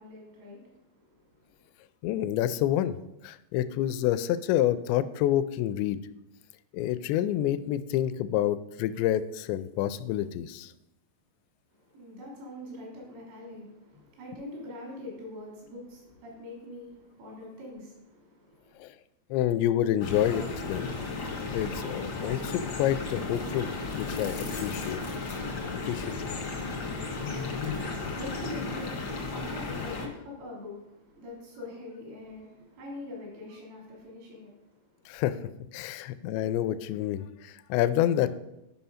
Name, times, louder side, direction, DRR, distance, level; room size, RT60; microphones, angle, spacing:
voice 1, 0.0-1.7 11.7-18.8 28.0-35.2, left 1 dB, 80° right, -4 dB, 5.6 m, -44 dB
voice 2, 2.0-3.0 3.2-6.0 6.7-10.7 18.8-18.9 19.3-20.9 21.5-25.0 25.8-26.3 35.1-35.4 35.7-38.4, left 12 dB, 85° left, 14 dB, 2.8 m, -28 dB
sound 1, 20.0-30.1, left 4 dB, 70° left, 1.1 m, -34 dB
10.5 x 5.6 x 5.6 m, 0.90 s
omnidirectional pair, 5.0 m